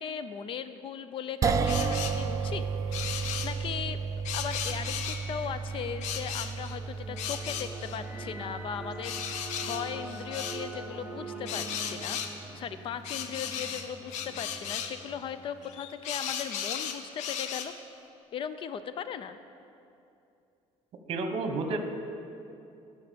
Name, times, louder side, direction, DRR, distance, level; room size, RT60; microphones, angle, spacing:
voice 1, 0.0-4.0 4.3-17.7 18.3-19.4, left 8 dB, 45° left, 12 dB, 0.4 m, -38 dB
sound 1, 1.4-13.7, right 5 dB, 30° right, 0.4 m, -34 dB
sound 2, 1.7-2.2 2.9-3.5 4.2-5.5 6.0-6.8 7.2-8.0 9.0-10.6 11.5-12.3 13.0-15.0 15.6-17.7, left 8 dB, 75° left, 0.7 m, -36 dB
sound 3, 2.8-16.3, right 2 dB, 10° right, 0.9 m, -45 dB
voice 2, 21.1-21.8, right 3 dB, 50° right, 6 dB, 1.1 m, -30 dB
11.0 x 5.8 x 6.8 m, 2.6 s
cardioid pair, 135°, 12 cm